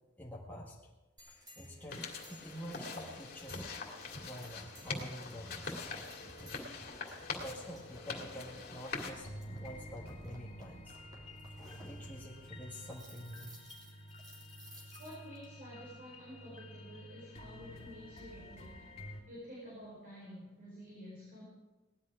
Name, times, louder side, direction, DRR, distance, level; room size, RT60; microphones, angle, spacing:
voice 1, 0.2-0.8 1.2-1.3 1.6-3.6 4.2-5.8 7.4-9.3 9.6-11.0 11.5-13.5, equal, 10° left, -4 dB, 1.5 m, -47 dB
sound 1, 1.2-15.4, equal, 25° right, 3.4 m, -56 dB
sound 2, 1.9-9.1, left 4 dB, 55° left, 2.3 m, -43 dB
sound 3, 9.0-19.2, equal, 35° left, 2.7 m, -50 dB
voice 2, 15.0-21.4, equal, 50° right, -5 dB, 4.5 m, -50 dB
18.0 x 11.5 x 4.9 m, 1.1 s
head